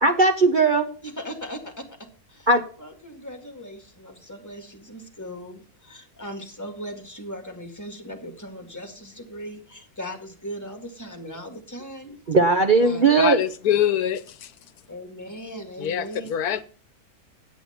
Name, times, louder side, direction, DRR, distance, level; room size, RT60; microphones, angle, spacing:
voice 1, 0.0-0.9 2.5-2.6 12.3-13.4, right 3 dB, 40° right, 0.8 m, -18 dB
voice 2, 1.0-1.9 2.3-2.5 2.8-12.2 12.8-13.1 14.9-16.3, equal, 10° left, 1.9 m, -38 dB
voice 3, 13.2-14.5 15.8-16.6, left 10 dB, 80° left, 1.2 m, -24 dB
8.9 x 8.4 x 5.7 m
omnidirectional pair, 1.6 m